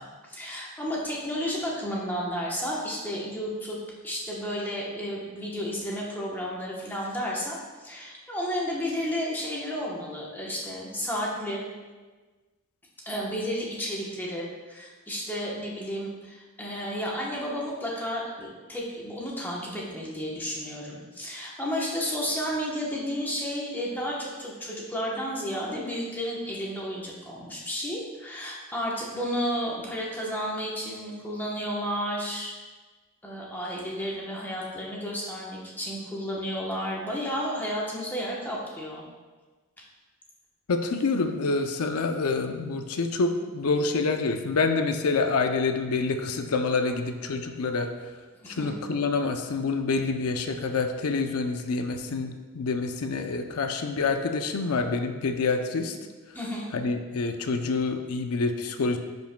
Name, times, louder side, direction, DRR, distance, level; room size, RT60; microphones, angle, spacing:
voice 1, 0.0-3.8 4.0-11.6 13.0-32.6 33.2-39.0 48.4-48.8 56.3-56.7, equal, 10° left, -4 dB, 0.9 m, -32 dB
voice 2, 40.7-47.9 48.5-56.0 56.7-59.0, left 4 dB, 85° left, 6 dB, 0.5 m, -27 dB
10.5 x 5.2 x 2.2 m, 1.3 s
head